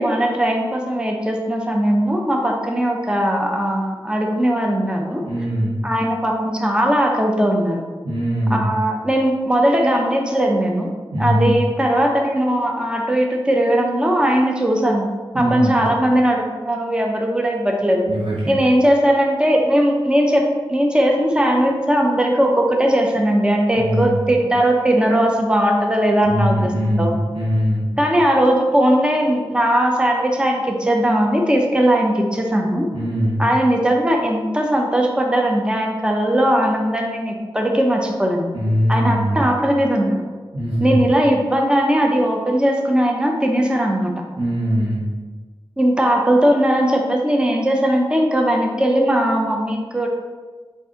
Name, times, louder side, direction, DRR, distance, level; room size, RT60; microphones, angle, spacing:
voice 1, 0.0-5.2 5.8-7.8 8.5-10.9 11.2-15.1 15.3-18.1 18.5-26.7 27.0-27.1 28.0-32.9 33.4-38.5 38.9-40.2 40.8-44.1 45.8-50.1, right 1 dB, 10° right, 1 dB, 0.6 m, -18 dB
voice 2, 5.2-5.7 8.0-8.7 11.1-11.6 15.3-15.8 18.1-18.5 23.7-24.2 26.2-27.8 32.9-33.4 38.5-39.4 40.5-41.0 44.4-45.0, equal, 85° right, -8 dB, 1.0 m, -21 dB
3.8 x 2.6 x 3.7 m, 1.4 s
wide cardioid pair, 65°, 9 cm